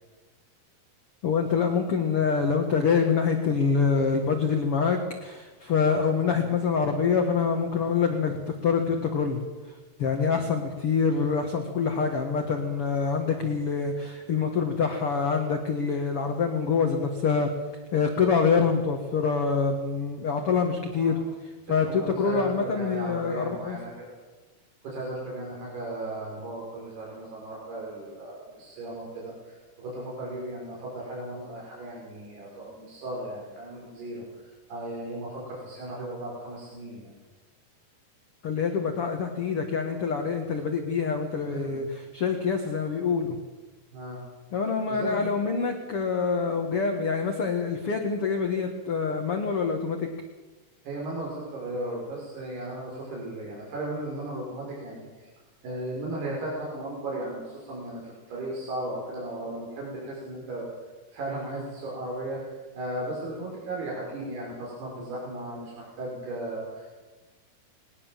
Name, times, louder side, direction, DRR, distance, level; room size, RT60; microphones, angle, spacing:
voice 1, 1.2-9.4 10.0-17.5 17.9-21.2 21.7-23.8 38.4-43.4 44.5-50.1, left 5 dB, 50° left, 4 dB, 1.9 m, -26 dB
voice 2, 20.9-21.2 21.8-23.9 24.8-34.2 34.7-37.1 41.4-41.9 43.9-44.2 44.9-45.3 50.8-55.0 55.6-60.7 61.1-62.4 62.8-66.9, right 1 dB, 75° right, -4 dB, 7.2 m, -36 dB
21.0 x 18.5 x 7.5 m, 1.2 s
omnidirectional pair, 4.6 m